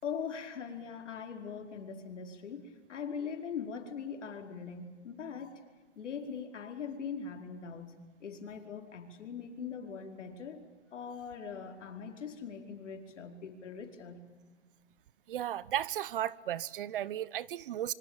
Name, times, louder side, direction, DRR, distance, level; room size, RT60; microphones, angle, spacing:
voice 1, 0.0-5.6 6.0-10.6 10.9-14.2, left 6 dB, 80° left, 4.9 m, -41 dB
voice 2, 15.3-17.9, right 11 dB, 50° right, 0.8 m, -35 dB
26.0 x 25.0 x 8.9 m
hypercardioid pair, 165°, 36 cm